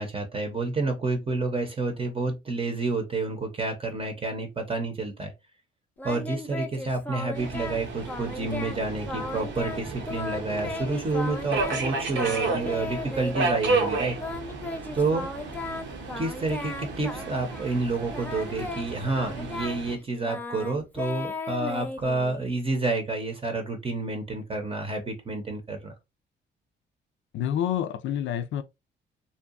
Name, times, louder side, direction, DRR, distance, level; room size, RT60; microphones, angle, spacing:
voice 1, 0.0-5.3 6.0-14.2 14.9-15.3 16.2-25.9, right 3 dB, 30° right, 0.7 m, -29 dB
Singing, 6.0-7.8 8.1-8.8 9.1-11.8 12.1-13.6 14.2-17.8 18.1-22.5, left 2 dB, 10° left, 0.5 m, -36 dB
Subway metro underground, 7.3-20.0, right 3 dB, 65° right, 0.8 m, -32 dB
voice 2, 27.3-28.6, left 10 dB, 70° left, 0.4 m, -28 dB
2.7 x 2.3 x 2.4 m
cardioid pair, 90°, 20 cm